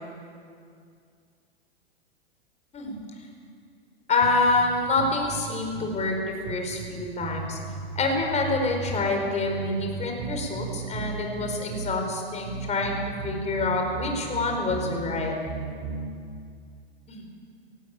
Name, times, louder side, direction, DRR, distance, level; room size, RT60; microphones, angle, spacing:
voice 1, 4.1-7.6 7.9-13.0 13.2-15.3 17.1-17.3, left 3 dB, 20° left, 2 dB, 4.8 m, -27 dB
sound 1, 4.2-6.0 6.5-9.0 9.5-12.0 12.5-15.0 15.4-16.1, right 4 dB, 40° right, 3.3 m, -36 dB
18.5 x 16.5 x 9.0 m, 2.3 s
hypercardioid pair, 105°, 31 cm